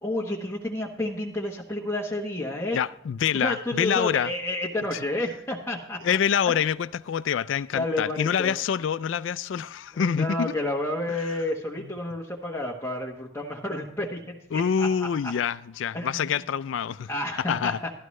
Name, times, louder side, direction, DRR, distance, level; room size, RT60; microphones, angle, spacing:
voice 1, 0.0-2.8 3.3-6.0 6.5-6.6 7.7-8.6 9.9-15.3 15.9-16.3 17.1-17.9, left 1 dB, 10° left, 1.2 m, -30 dB
voice 2, 2.7-4.3 6.0-10.5 14.5-17.1 17.5-17.8, left 7 dB, 70° left, 0.3 m, -26 dB
14.0 x 12.5 x 3.2 m
head